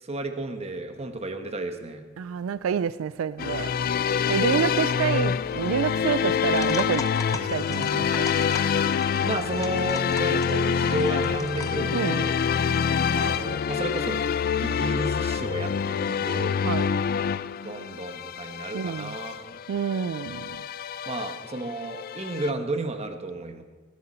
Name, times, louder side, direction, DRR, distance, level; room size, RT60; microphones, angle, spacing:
voice 1, 0.0-2.0 4.6-4.7 9.2-12.4 13.1-14.2 14.6-16.6 17.6-19.6 21.1-23.6, right 1 dB, 30° right, 1.1 m, -32 dB
voice 2, 2.2-3.7 4.1-7.1 7.5-8.3 11.9-12.3 16.6-16.9 18.7-19.2 19.7-20.6, right 7 dB, 80° right, 0.3 m, -28 dB
sound 1, 3.4-22.5, left 7 dB, 45° left, 0.3 m, -26 dB
sound 2, 6.5-11.8, left 3 dB, 15° left, 0.8 m, -40 dB
19.5 x 10.5 x 4.3 m
head